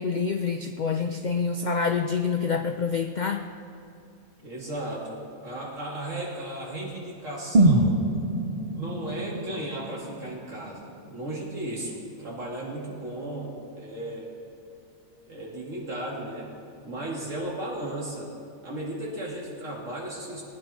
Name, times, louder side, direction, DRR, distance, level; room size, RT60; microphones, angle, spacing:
voice 1, 0.0-3.5, left 5 dB, 80° left, 6 dB, 0.4 m, -27 dB
voice 2, 4.4-8.0 8.7-14.3 15.3-16.5 16.8-18.3 18.6-20.4, right 1 dB, 60° right, -4 dB, 3.1 m, -35 dB
sound 1, 7.5-11.5 11.8-11.9, right 1 dB, 35° right, 0.7 m, -25 dB
19.0 x 9.8 x 4.4 m, 2.6 s
omnidirectional pair, 1.5 m